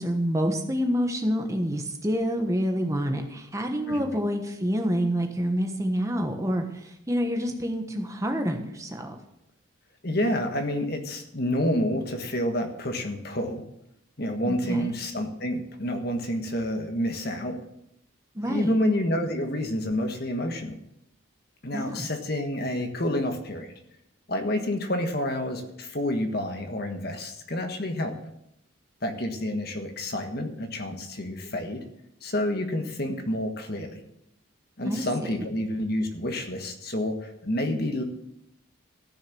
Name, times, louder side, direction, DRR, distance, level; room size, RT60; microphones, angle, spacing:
voice 1, 0.0-9.2 14.4-14.9 18.3-18.7 21.7-22.1 34.8-35.0, equal, 15° right, 4 dB, 1.2 m, -27 dB
voice 2, 10.0-13.6 14.2-17.6 18.4-20.8 21.6-23.7 24.3-28.1 29.0-31.8 32.2-34.0 34.8-38.0, left 1 dB, 50° left, 5 dB, 1.5 m, -29 dB
14.0 x 6.6 x 7.0 m, 0.79 s
head